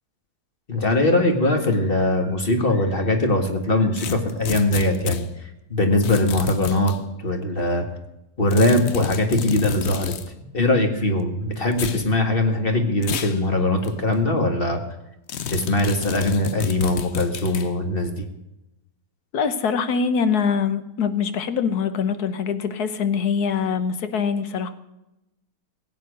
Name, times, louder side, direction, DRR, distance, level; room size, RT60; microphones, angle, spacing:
voice 1, 0.7-6.9 7.2-7.9 8.4-10.1 10.5-14.8 15.5-18.3, left 1 dB, 35° left, 5 dB, 1.9 m, -21 dB
sound 1, 4.0-5.2 6.0-7.0 8.5-10.3 11.7-12.0 13.0-13.4 13.8-13.9 15.3-17.7, left 8 dB, 55° left, 0.9 m, -30 dB
voice 2, 19.3-24.7, left 6 dB, 75° left, 11 dB, 1.5 m, -23 dB
16.5 x 8.5 x 6.5 m, 0.91 s
omnidirectional pair, 1.7 m